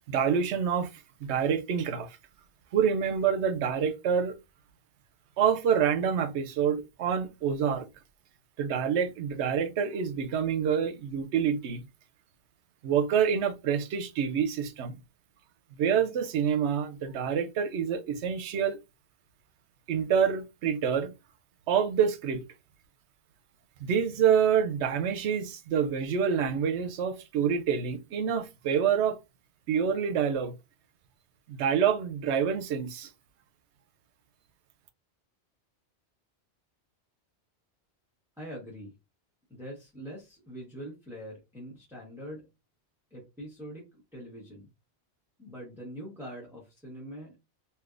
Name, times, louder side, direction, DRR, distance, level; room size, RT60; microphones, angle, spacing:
voice 1, 0.1-0.9 1.2-2.2 2.7-4.3 5.4-7.8 8.6-11.8 12.8-15.0 15.8-18.8 19.9-21.1 21.7-22.4 23.8-29.2 29.7-30.5 31.5-33.1, right 7 dB, 80° right, 0.9 m, -27 dB
voice 2, 38.4-38.9 39.5-42.5 43.1-44.7 45.4-47.3, equal, ahead, 1.0 m, -43 dB
3.4 x 2.7 x 2.4 m
omnidirectional pair, 1.1 m